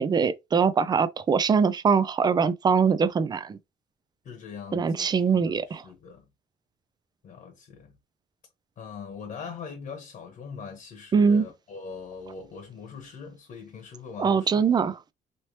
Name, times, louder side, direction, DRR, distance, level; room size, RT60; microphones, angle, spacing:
voice 1, 0.0-3.6 4.7-5.8 11.1-11.5 14.2-15.0, right 6 dB, 25° right, 0.4 m, -22 dB
voice 2, 4.2-6.2 7.2-7.9 8.8-14.6, left 5 dB, 50° left, 1.1 m, -42 dB
3.2 x 2.9 x 2.8 m
cardioid pair, 110°, 17 cm